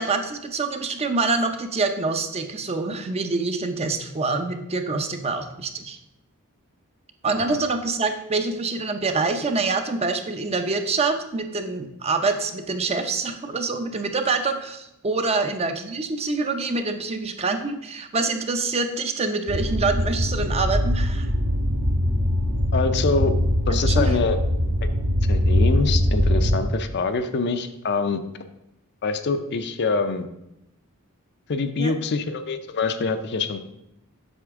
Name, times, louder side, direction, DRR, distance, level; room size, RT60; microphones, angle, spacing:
voice 1, 0.0-6.0 7.2-21.3 23.8-24.1 31.8-32.0, right 3 dB, 30° right, 7 dB, 0.6 m, -26 dB
sound 1, 19.5-26.6, left 1 dB, 65° right, 1.1 m, -22 dB
voice 2, 22.7-23.3 23.7-24.4 25.3-28.2 29.0-30.3 31.5-33.6, left 4 dB, 50° left, 9 dB, 0.5 m, -25 dB
7.9 x 5.9 x 3.6 m, 0.85 s
head